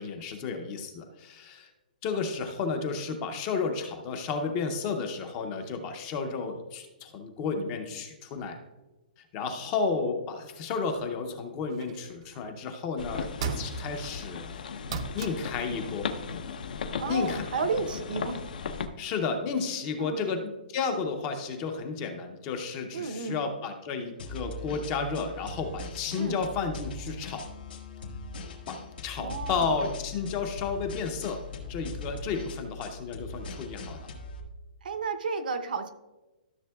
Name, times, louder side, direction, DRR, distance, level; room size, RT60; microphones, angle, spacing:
voice 1, 0.0-1.7 2.0-8.6 9.3-14.6 15.1-16.1 17.0-17.5 19.0-27.4 28.7-28.8 29.0-31.4 31.7-34.1, left 5 dB, 20° left, 5 dB, 0.6 m, -32 dB
sound 1, 11.7-12.4 13.4-14.1 14.9-15.6 17.4-17.5, right 5 dB, 40° right, 0.5 m, -35 dB
sound 2, 13.0-18.9, left 6 dB, 60° left, 0.7 m, -36 dB
voice 2, 17.0-18.5 20.0-20.3 22.9-23.4 26.1-26.4 29.2-29.7 34.8-35.9, right 4 dB, 65° right, 8 dB, 0.7 m, -32 dB
sound 3, 24.2-34.4, left 3 dB, 80° left, 1.6 m, -40 dB
13.5 x 6.8 x 2.3 m, 1.1 s
hypercardioid pair, 175°, 5 cm